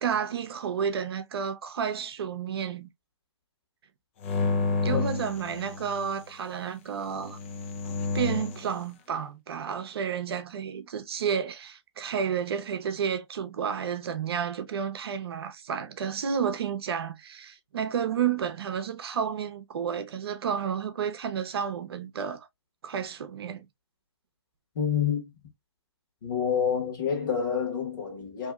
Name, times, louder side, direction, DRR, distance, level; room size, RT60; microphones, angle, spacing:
voice 1, 0.0-2.9 4.8-7.4 8.1-22.5 22.8-23.7, right 7 dB, 55° right, 0.7 m, -31 dB
sound 1, 4.2-6.2 7.2-8.7, left 4 dB, 25° left, 0.4 m, -30 dB
voice 2, 24.7-25.2 26.2-28.5, left 7 dB, 45° left, 1.3 m, -28 dB
2.8 x 2.7 x 2.3 m
hypercardioid pair, 150°, 15 cm